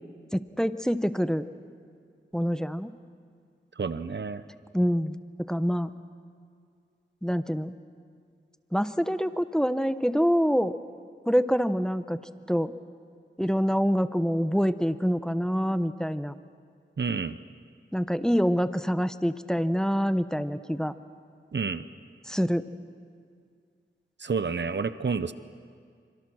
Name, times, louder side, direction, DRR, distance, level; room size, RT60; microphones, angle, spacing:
voice 1, 0.3-1.5 2.3-2.9 4.7-5.9 7.2-7.7 8.7-10.7 11.3-12.2 12.5-12.7 13.4-16.3 17.9-20.9 22.2-22.7, equal, 5° left, 12 dB, 0.9 m, -26 dB
voice 2, 3.8-4.4 17.0-17.4 21.5-21.8 24.2-25.3, right 5 dB, 65° right, 13 dB, 0.8 m, -29 dB
26.5 x 25.5 x 6.3 m, 2.2 s
wide cardioid pair, 45°, 20 cm